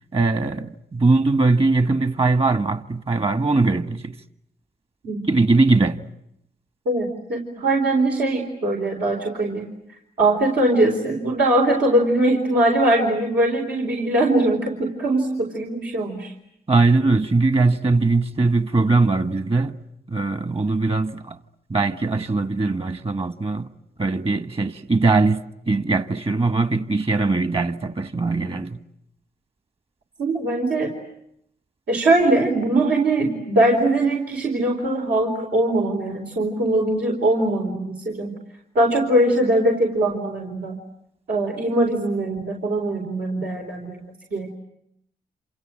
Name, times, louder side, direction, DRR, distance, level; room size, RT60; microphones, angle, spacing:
voice 1, 0.1-4.2 5.3-6.0 16.7-19.8 20.1-21.4 21.7-23.7 24.0-28.8, right 3 dB, 35° right, 1.7 m, -20 dB
voice 2, 6.9-9.7 10.2-16.3 30.2-30.9 31.9-38.3 38.7-40.8 41.3-44.0 44.3-44.5, right 1 dB, 80° right, 4.4 m, -21 dB
28.0 x 27.5 x 7.7 m
cardioid pair, 70°, 17 cm